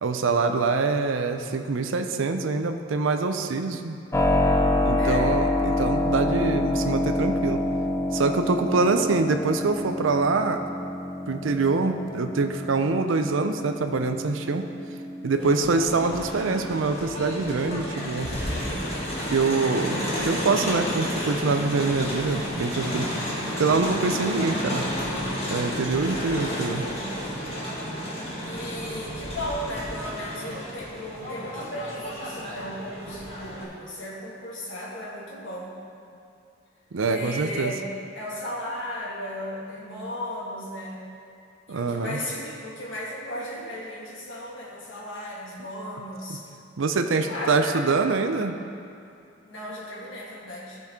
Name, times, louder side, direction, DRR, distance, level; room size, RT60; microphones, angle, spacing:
voice 1, 0.0-4.0 4.8-7.6 8.1-10.6 11.3-14.7 15.2-18.3 19.3-23.1 23.6-24.8 25.5-26.8 36.9-37.7 41.7-42.2 46.8-48.6, right 4 dB, 70° right, 6 dB, 0.5 m, -25 dB
Keyboard (musical), 4.1-16.9, left 1 dB, 15° left, 0.5 m, -27 dB
voice 2, 5.0-5.4 15.3-15.6 26.0-27.1 28.5-35.8 37.1-41.0 41.7-46.4 47.1-47.9 49.5-50.8, left 1 dB, 65° left, -5 dB, 1.9 m, -35 dB
Crowd, 15.4-33.6, equal, 30° left, 1.6 m, -31 dB
14.5 x 5.3 x 3.6 m, 2.6 s
head